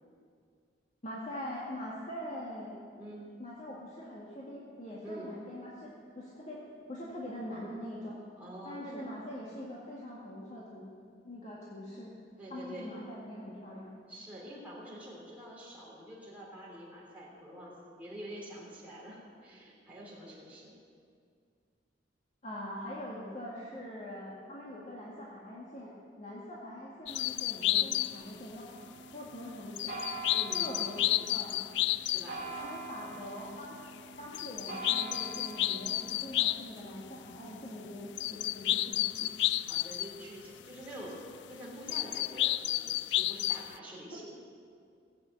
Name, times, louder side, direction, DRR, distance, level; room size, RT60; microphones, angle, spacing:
voice 1, 1.0-2.8 3.4-6.6 6.9-8.2 8.6-10.9 11.2-12.1 12.5-13.9 22.4-25.9 26.2-28.7 29.1-30.0 30.5-31.6 32.6-33.8 34.2-39.4, left 1 dB, 40° left, -6 dB, 2.0 m, -43 dB
voice 2, 2.8-3.3 5.0-5.3 8.4-9.0 12.4-13.0 14.1-20.7 30.3-30.9 32.0-32.5 39.5-41.2 41.5-44.3, right 1 dB, 10° right, -7 dB, 3.4 m, -46 dB
sound 1, 27.1-28.6 29.8-36.7 37.3-37.4 38.2-40.2 41.9-43.7, left 15 dB, 70° left, 0.3 m, -32 dB
sound 2, 28.7-38.8, right 3 dB, 45° right, 3.6 m, -46 dB
17.0 x 8.5 x 7.8 m, 2.2 s
head